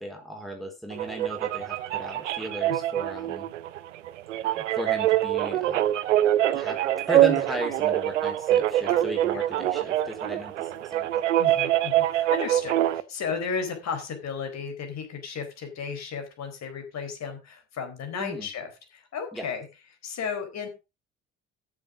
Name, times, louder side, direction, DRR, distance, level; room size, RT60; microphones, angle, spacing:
voice 1, 0.0-3.5 4.4-6.1 6.5-6.8 7.1-11.4 18.1-18.5 19.3-19.5, equal, ahead, 2 dB, 4.1 m, -36 dB
sound 1, 0.9-13.0, right 13 dB, 70° right, 0.8 m, -25 dB
voice 2, 2.7-3.0 8.9-9.0 9.3-9.4 11.4-19.7 20.0-20.7, left 6 dB, 45° left, 6 dB, 4.2 m, -34 dB
13.5 x 7.4 x 5.0 m, 0.28 s
figure-of-eight pair, 55°, 38 cm